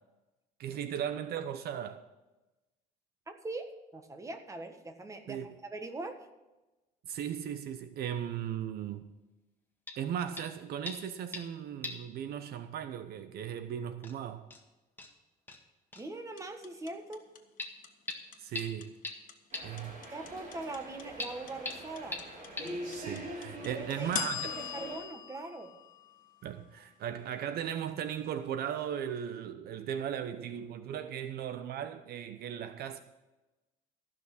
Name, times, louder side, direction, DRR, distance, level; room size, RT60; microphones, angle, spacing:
voice 1, 0.6-2.0 5.3-5.5 7.1-9.1 10.0-14.5 18.4-19.0 19.6-19.9 22.9-24.6 26.4-33.0, right 9 dB, 70° right, 0.8 m, -37 dB
voice 2, 3.3-6.1 15.9-17.3 20.1-22.2 23.6-25.7, right 2 dB, 20° right, 1.5 m, -42 dB
sound 1, 9.9-10.0 10.4-10.6 10.9-11.5 11.8-12.1 12.4-12.5 13.5-13.6 14.0-14.1 14.5-14.6 15.0-15.1 15.5-15.6 15.9-16.1 17.6-17.7 18.1-18.2 18.5-18.7 19.0-19.1 19.5-19.6 21.2-21.3 21.7-21.8 22.1-22.2 22.6-22.7, left 2 dB, 10° left, 1.7 m, -39 dB
sound 2, 16.4-26.5, left 10 dB, 50° left, 1.5 m, -41 dB
sound 3, 19.5-25.0, right 1 dB, 50° right, 5.1 m, -44 dB
14.5 x 6.1 x 7.8 m
cardioid pair, 110°, 17 cm